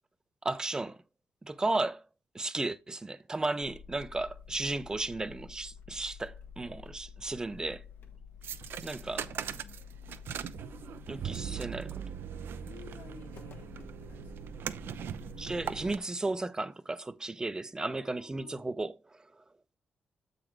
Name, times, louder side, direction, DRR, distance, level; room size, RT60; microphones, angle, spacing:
voice 1, 0.4-1.0 1.4-2.0 2.3-7.8 8.8-9.3 11.1-12.0 15.4-19.0, right 2 dB, 20° right, 0.5 m, -34 dB
sound 1, 3.6-16.0, left 6 dB, 65° left, 1.2 m, -50 dB
sound 2, 8.4-16.0, right 9 dB, 75° right, 0.5 m, -40 dB
voice 2, 9.5-9.9 10.9-11.0 11.3-11.6 12.6-13.7 14.0-14.5 17.9-18.8, left 7 dB, 85° left, 1.1 m, -54 dB
7.5 x 3.9 x 4.5 m
cardioid pair, 110°, 4 cm